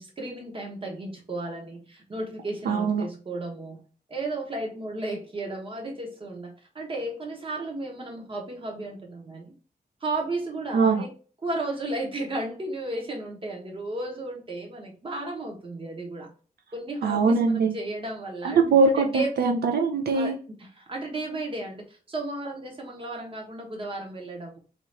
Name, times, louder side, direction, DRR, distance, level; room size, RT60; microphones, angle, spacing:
voice 1, 0.0-3.8 4.1-9.5 10.0-11.1 11.4-16.3 16.7-18.6 19.0-19.3 20.1-20.3 20.6-24.6, right 2 dB, 30° right, 0 dB, 1.0 m, -34 dB
voice 2, 2.7-3.0 10.7-11.0 17.0-17.7 18.4-20.4, right 4 dB, 80° right, 3 dB, 0.5 m, -22 dB
2.9 x 2.5 x 4.3 m, 0.39 s
wide cardioid pair, 160°, 16 cm